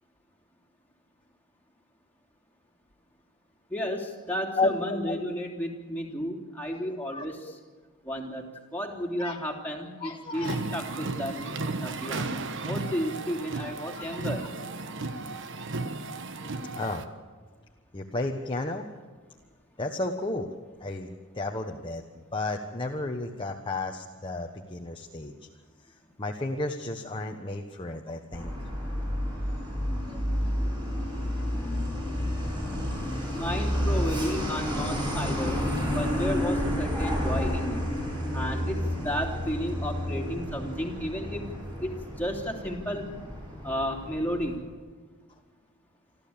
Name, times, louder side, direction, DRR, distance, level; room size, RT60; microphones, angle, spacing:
voice 1, 3.7-7.5 8.0-8.4 8.7-14.4 33.3-35.7 35.9-37.8 38.3-41.5 41.8-43.1 43.6-44.7, equal, 10° left, 0 dB, 3.2 m, -33 dB
voice 2, 4.6-5.3 6.7-7.2 9.2-9.4 10.0-10.6 13.9-14.1 16.7-17.1 17.9-18.9 19.8-20.5 20.8-22.0 22.3-25.4 26.2-28.5 30.1-30.2 31.4-32.7, left 2 dB, 25° left, 2 dB, 1.2 m, -33 dB
sound 1, 10.3-17.0, right 3 dB, 60° right, 1.3 m, -34 dB
Truck, 28.3-44.6, equal, 20° right, 7.5 m, -30 dB
26.0 x 14.0 x 8.8 m, 1.5 s
head